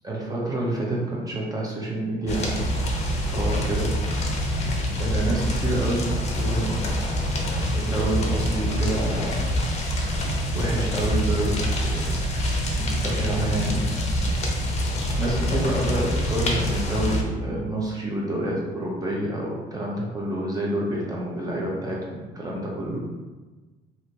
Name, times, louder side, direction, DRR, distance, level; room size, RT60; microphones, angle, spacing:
voice 1, 0.0-4.0 5.0-7.2 7.7-9.5 9.9-12.1 12.8-13.9 15.1-23.0, right 1 dB, 20° right, -3 dB, 0.9 m, -28 dB
sound 1, 2.3-17.2, equal, 40° left, 0.7 m, -25 dB
3.3 x 2.8 x 2.8 m, 1.2 s
cardioid pair, 110°, 17 cm